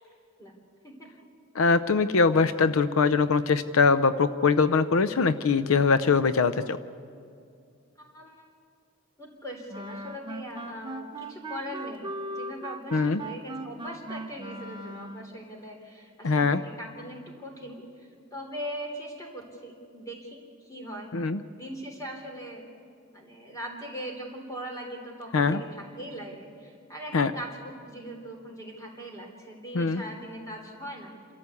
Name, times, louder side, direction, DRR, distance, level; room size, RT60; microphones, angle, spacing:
voice 1, 1.5-6.8 12.9-13.2 16.2-16.6 21.1-21.4 25.3-25.6 27.1-27.3 29.7-30.0, left 4 dB, 80° left, 13 dB, 0.6 m, -22 dB
voice 2, 8.0-8.5 9.2-21.1 21.6-22.7 23.1-31.2, equal, 15° left, 1 dB, 3.5 m, -40 dB
Wind instrument woodwind instrument, 9.7-15.4, right 2 dB, 25° right, 0.8 m, -38 dB
27.0 x 13.5 x 8.3 m, 2.4 s
head